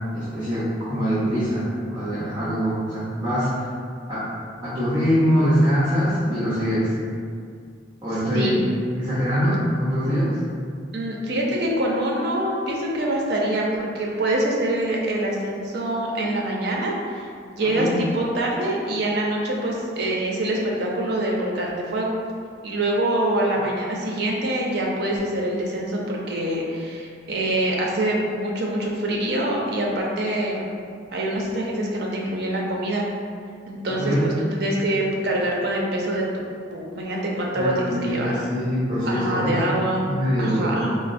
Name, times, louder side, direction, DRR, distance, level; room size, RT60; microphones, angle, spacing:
voice 1, 0.1-3.5 4.1-4.3 4.6-6.9 8.0-8.6 9.0-10.4 17.7-17.9 34.0-34.3 37.5-39.6 40.1-40.8, equal, 25° right, -12 dB, 0.7 m, -23 dB
voice 2, 10.9-22.1 22.6-30.6 31.1-33.0 33.7-36.3 36.7-38.4 39.1-40.0 40.4-41.0, right 1 dB, 60° right, -2 dB, 0.5 m, -25 dB
4.0 x 2.0 x 2.5 m, 2.2 s
head